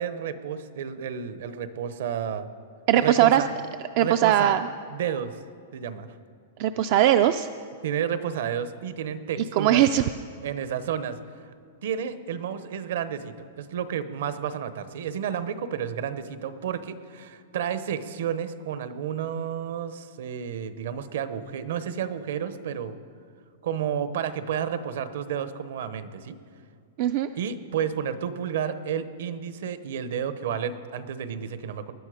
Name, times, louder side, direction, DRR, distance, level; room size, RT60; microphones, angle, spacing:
voice 1, 0.0-2.5 3.0-3.5 4.0-4.6 4.9-5.4 5.7-6.2 7.8-9.8 10.4-11.2 11.8-22.9 23.6-26.4 27.4-31.9, right 8 dB, 55° right, 12 dB, 0.8 m, -31 dB
voice 2, 2.9-3.4 4.0-4.6 6.6-7.5 9.6-10.0 27.0-27.3, right 12 dB, 35° right, 10 dB, 0.3 m, -20 dB
20.0 x 11.0 x 5.0 m, 2.3 s
supercardioid pair, 175°, 0 cm